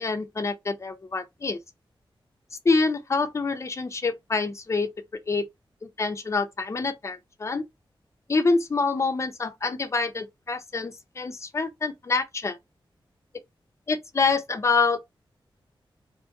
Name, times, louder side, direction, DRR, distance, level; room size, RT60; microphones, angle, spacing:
voice 1, 0.0-1.6 2.6-4.9 5.3-5.4 5.8-7.6 8.3-12.6 13.9-15.0, left 4 dB, 30° left, 0.5 m, -26 dB
2.6 x 2.2 x 2.9 m
wide cardioid pair, 140°, 9 cm